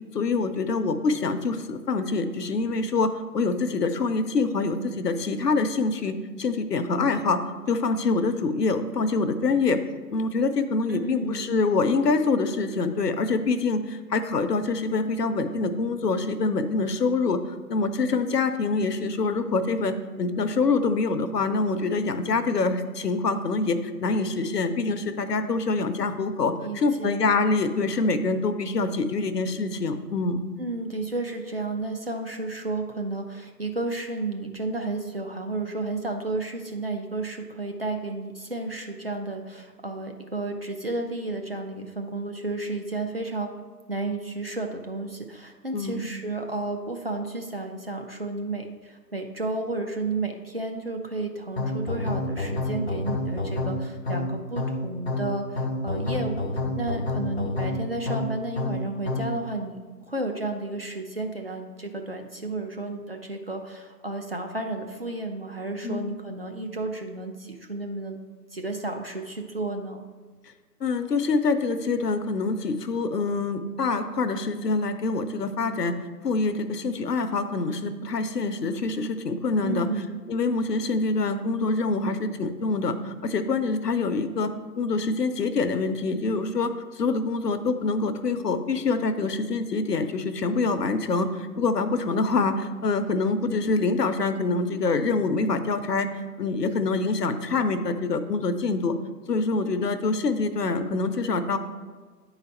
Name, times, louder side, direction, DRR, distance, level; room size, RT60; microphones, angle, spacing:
voice 1, 0.1-7.4 7.7-9.8 10.1-17.4 17.7-30.4 45.7-46.1 65.8-66.1 70.8-76.0 76.2-79.9 80.3-96.1 96.4-99.0 99.3-101.6, left 3 dB, 75° left, 9 dB, 0.7 m, -25 dB
voice 2, 10.9-11.5 26.6-27.2 30.6-43.5 43.9-56.4 56.8-59.8 60.1-68.2 68.5-70.0 79.6-80.2, right 2 dB, 40° right, 3 dB, 0.4 m, -32 dB
sound 1, 51.6-59.4, left 2 dB, 45° left, 0.5 m, -29 dB
9.7 x 4.0 x 4.4 m, 1.4 s
figure-of-eight pair, 140°, 49 cm